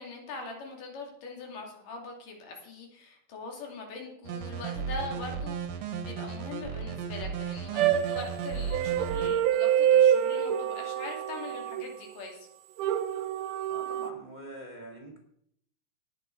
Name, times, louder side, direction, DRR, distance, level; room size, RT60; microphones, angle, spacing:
voice 1, 0.0-12.5, left 3 dB, 65° left, 1 dB, 4.0 m, -42 dB
sound 1, 4.2-9.3, right 6 dB, 60° right, 1.8 m, -35 dB
sound 2, 7.8-12.1 12.8-14.1, right 10 dB, 75° right, 2.0 m, -26 dB
voice 2, 13.7-15.2, right 1 dB, 15° right, 1 dB, 1.5 m, -44 dB
18.0 x 6.9 x 4.6 m, 0.68 s
omnidirectional pair, 4.1 m